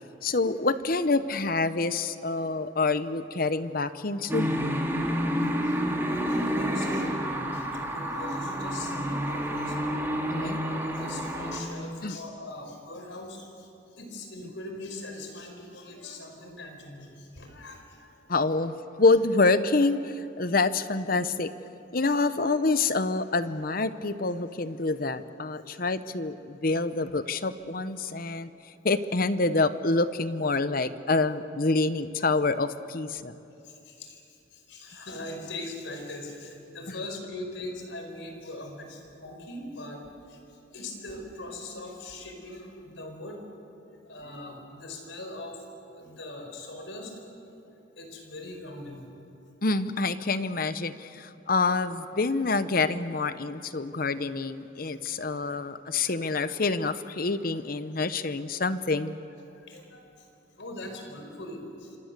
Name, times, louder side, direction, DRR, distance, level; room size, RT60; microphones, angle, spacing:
voice 1, 0.2-4.5 10.3-10.6 12.0-12.2 18.3-21.5 21.9-28.5 28.8-33.4 49.6-59.2, left 3 dB, 50° left, 12 dB, 0.9 m, -27 dB
sound 1, 4.3-11.6, equal, 10° right, 2.6 m, -29 dB
voice 2, 6.0-7.2 7.5-9.8 10.3-18.2 33.6-34.2 34.5-40.4 40.7-43.4 44.0-45.6 45.9-47.4 47.7-49.0 54.8-54.9 55.3-55.5 59.6-60.3 60.6-62.0, left 1 dB, 75° left, 4 dB, 4.8 m, -41 dB
27.5 x 26.0 x 6.8 m, 2.8 s
head